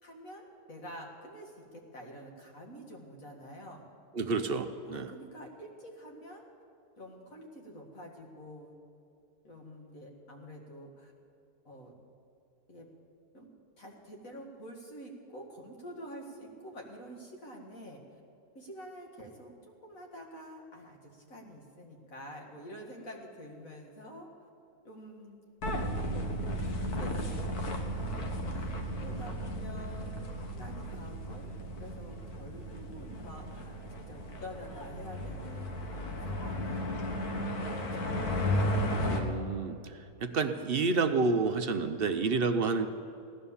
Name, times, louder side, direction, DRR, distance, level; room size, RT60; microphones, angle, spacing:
voice 1, 0.0-3.8 4.8-6.5 7.0-8.8 9.4-11.1 11.6-11.9 12.7-12.9 13.3-13.5 13.8-18.0 18.5-24.5 24.8-25.4 25.8-26.3 26.6-27.5 28.5-30.2 30.6-31.5 31.8-37.0 37.7-39.0, equal, 60° left, 0 dB, 2.5 m, -48 dB
voice 2, 4.1-5.1 39.1-39.8 40.2-42.9, right 4 dB, 50° right, 8 dB, 0.7 m, -29 dB
sound 1, 25.6-39.2, equal, 80° left, 1.9 m, -34 dB
17.0 x 11.5 x 7.1 m, 2.6 s
omnidirectional pair, 1.6 m